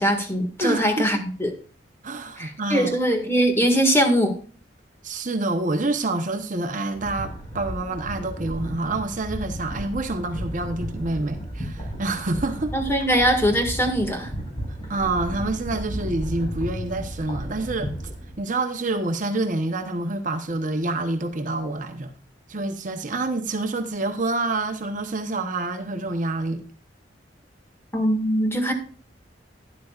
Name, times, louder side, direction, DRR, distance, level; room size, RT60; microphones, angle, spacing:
voice 1, 0.0-1.5 2.4-4.3 12.7-14.3 27.9-28.7, equal, 15° left, 1.8 m, -21 dB
voice 2, 0.6-1.0 2.0-2.9 5.0-12.7 14.9-17.9 18.4-22.1 22.5-26.6, right 2 dB, 45° right, 1.0 m, -27 dB
sound 1, 6.8-18.4, equal, 30° left, 5.0 m, -34 dB
12.5 x 11.0 x 2.4 m
head